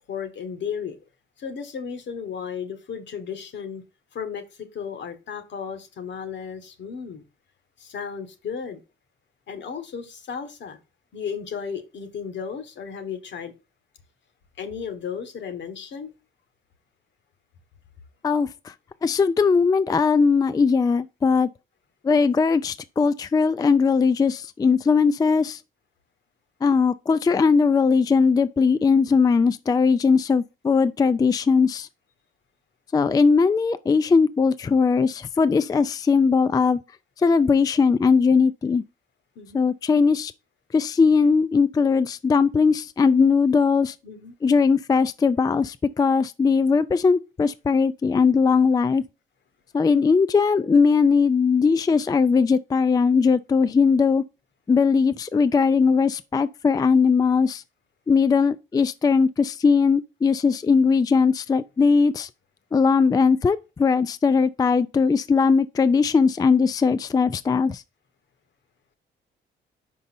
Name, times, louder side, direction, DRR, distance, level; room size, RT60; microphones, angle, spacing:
voice 1, 0.1-1.0 1.4-3.8 4.1-7.2 7.8-8.8 9.5-10.8 11.1-13.5 14.6-16.1 39.3-39.6 44.0-44.3, left 7 dB, 65° left, 1.4 m, -34 dB
voice 2, 18.2-18.7 19.0-21.5 22.0-25.6 26.6-31.9 32.9-36.8 37.2-38.8 39.5-40.3 40.7-44.0 44.4-49.0 49.7-54.2 54.7-57.6 58.1-62.3 62.7-67.8, left 5 dB, 20° left, 0.3 m, -19 dB
5.4 x 5.1 x 4.2 m
cardioid pair, 90°, 20 cm